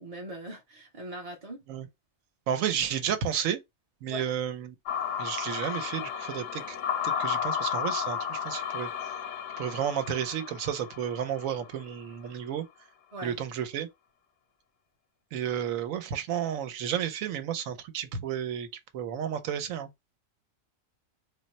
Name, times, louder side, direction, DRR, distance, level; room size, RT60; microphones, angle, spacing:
voice 1, 0.0-1.6 4.1-4.3 13.1-13.4, right 1 dB, 40° right, 0.6 m, -40 dB
voice 2, 2.5-3.6 4.0-4.7 5.2-6.6 7.0-8.9 9.6-12.6 13.2-13.9 15.3-18.7 18.9-19.9, right 9 dB, 90° right, 1.1 m, -32 dB
sound 1, 4.9-12.0, left 8 dB, 80° left, 1.1 m, -33 dB
3.7 x 2.1 x 4.1 m
omnidirectional pair, 1.4 m